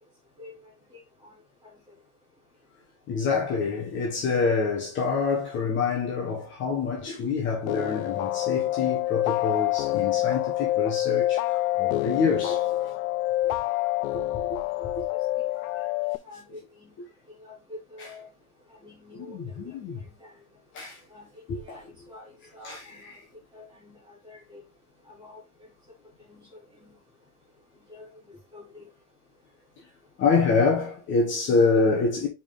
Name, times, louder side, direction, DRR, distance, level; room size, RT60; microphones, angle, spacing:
voice 1, 0.9-1.3 1.6-1.7 14.7-15.0 15.8-15.9 16.2-17.0 17.4-18.3 18.8-19.4 19.9-20.3 21.1-23.0 23.5-24.6 25.1-25.4 26.2-27.0 27.9-28.9, left 2 dB, 10° right, 2.8 m, -48 dB
voice 2, 3.1-12.7 14.1-14.9 15.7-15.9 18.0-18.1 19.1-20.0 20.7-21.0 21.5-21.8 22.6-23.2 30.2-32.3, left 4 dB, 25° left, 1.4 m, -26 dB
sound 1, 7.7-16.2, left 16 dB, 70° left, 0.5 m, -27 dB
5.1 x 5.0 x 3.7 m
supercardioid pair, 165°, 44 cm